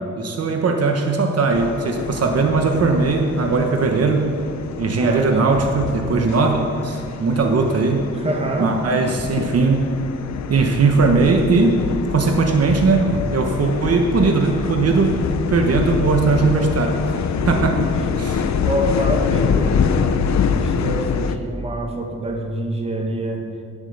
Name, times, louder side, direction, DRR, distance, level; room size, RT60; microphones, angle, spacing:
voice 1, 0.2-4.2 4.8-8.0 8.6-9.8 10.5-11.8 12.1-15.2 15.5-17.2 17.5-17.7 18.2-18.4, right 4 dB, 55° right, 3 dB, 1.1 m, -19 dB
sound 1, 1.5-21.4, left 6 dB, 65° left, 0.7 m, -25 dB
voice 2, 5.0-5.5 8.1-8.8 17.4-23.5, right 1 dB, 20° right, 2 dB, 1.5 m, -26 dB
16.0 x 7.5 x 6.6 m, 2.3 s
wide cardioid pair, 165°, 29 cm